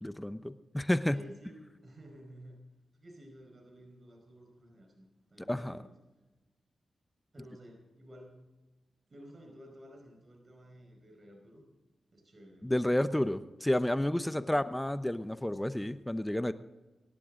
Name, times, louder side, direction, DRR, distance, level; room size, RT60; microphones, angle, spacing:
voice 1, 0.0-1.2 5.5-5.8 12.6-16.5, left 1 dB, 10° left, 13 dB, 0.8 m, -30 dB
voice 2, 1.1-2.6 2.9-5.9 7.3-8.4 9.1-11.6 12.1-12.7 14.2-14.6, equal, 45° right, 1 dB, 4.9 m, -53 dB
24.5 x 11.5 x 3.8 m, 1.1 s
supercardioid pair, 40°, 0 cm